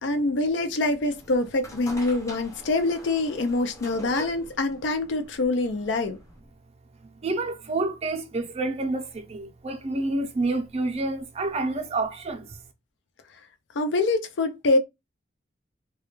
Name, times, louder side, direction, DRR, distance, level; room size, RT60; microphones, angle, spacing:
voice 1, 0.0-6.2 13.8-14.8, left 2 dB, 75° left, 0.4 m, -25 dB
sound 1, 1.1-6.4, equal, 15° left, 0.5 m, -44 dB
voice 2, 7.2-12.5, right 2 dB, 35° right, 0.5 m, -28 dB
2.3 x 2.1 x 2.9 m
head